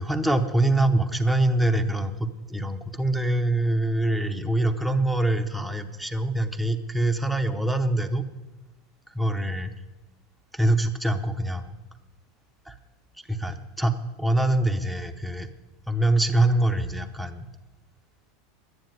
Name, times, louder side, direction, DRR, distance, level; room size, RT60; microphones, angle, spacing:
voice 1, 0.0-8.2 9.1-9.7 10.5-11.8 12.7-12.8 13.3-15.5 15.9-17.5, right 1 dB, ahead, 5 dB, 0.8 m, -24 dB
11.5 x 9.6 x 9.2 m, 1.1 s
supercardioid pair, 155°, 0 cm